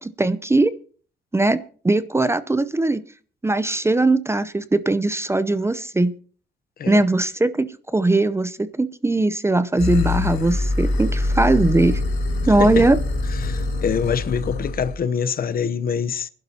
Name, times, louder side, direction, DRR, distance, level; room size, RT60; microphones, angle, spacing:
voice 1, 0.0-0.7 1.3-3.0 3.4-6.1 6.9-12.0 12.5-13.0, right 2 dB, 15° right, 0.6 m, -20 dB
sound 1, 9.8-15.0, left 2 dB, 85° left, 3.3 m, -24 dB
voice 2, 13.4-16.3, left 7 dB, 50° left, 0.8 m, -25 dB
22.5 x 11.5 x 2.8 m
cardioid pair, 90°, 20 cm